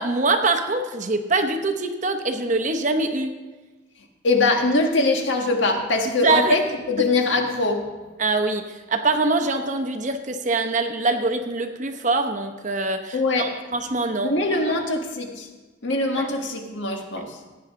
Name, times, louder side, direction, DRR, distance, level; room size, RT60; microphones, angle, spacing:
voice 1, 0.0-3.4 6.2-6.6 7.0-7.1 8.2-14.8 16.2-16.3 17.2-17.3, right 3 dB, 40° right, 6 dB, 0.9 m, -24 dB
voice 2, 4.2-6.6 6.9-7.8 13.1-13.5 14.2-15.5 15.8-17.4, left 2 dB, 70° left, 3 dB, 1.6 m, -22 dB
16.0 x 9.5 x 3.7 m, 1.3 s
head